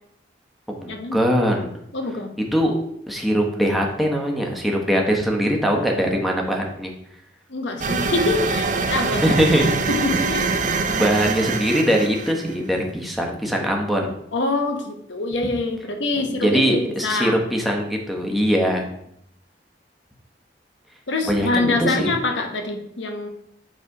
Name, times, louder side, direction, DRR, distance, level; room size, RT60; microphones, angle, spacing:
voice 1, 0.7-1.7 2.5-2.7 3.1-6.9 9.2-9.6 10.9-14.1 16.2-18.8 21.3-22.2, equal, ahead, 0 dB, 1.0 m, -21 dB
voice 2, 1.9-2.3 7.5-9.2 9.9-10.6 14.3-17.4 21.1-23.3, left 2 dB, 90° left, 4 dB, 1.1 m, -25 dB
sound 1, 7.8-12.6, right 4 dB, 45° right, 0.5 m, -24 dB
8.0 x 3.3 x 4.8 m, 0.75 s
head